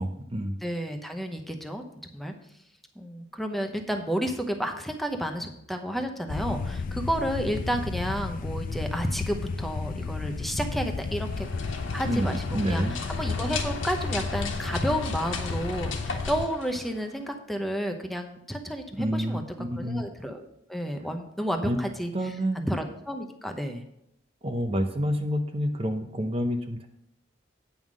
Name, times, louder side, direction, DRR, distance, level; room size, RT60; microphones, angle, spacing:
voice 1, 0.0-0.6 12.1-12.9 19.0-20.0 21.6-21.8 22.1-22.7 24.4-26.9, equal, 30° right, 6 dB, 0.7 m, -28 dB
voice 2, 0.6-1.8 2.1-2.3 3.0-11.5 11.9-12.8 13.1-19.4 19.8-23.8, equal, ahead, 5 dB, 0.8 m, -31 dB
sound 1, 6.3-16.5, left 4 dB, 45° left, 0.3 m, -33 dB
sound 2, 11.2-17.3, left 4 dB, 80° left, 1.4 m, -37 dB
9.2 x 5.7 x 6.2 m, 0.76 s
head